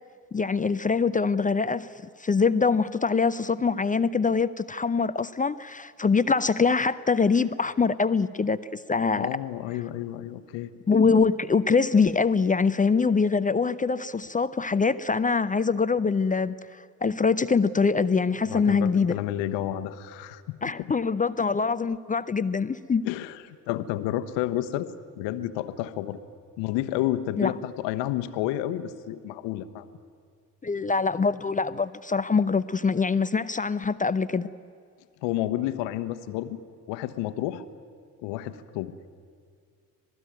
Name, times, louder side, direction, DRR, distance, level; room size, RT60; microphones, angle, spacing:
voice 1, 0.3-1.9 2.2-9.3 10.9-19.1 20.6-23.0 27.4-27.5 30.6-34.5, left 5 dB, 15° left, 15 dB, 0.6 m, -24 dB
voice 2, 9.2-10.7 18.4-20.9 23.0-24.9 25.2-26.2 26.6-29.9 35.2-36.6 36.9-37.7 38.2-38.9, left 13 dB, 60° left, 11 dB, 1.3 m, -30 dB
26.5 x 19.0 x 9.3 m, 2.2 s
figure-of-eight pair, 45°, 48 cm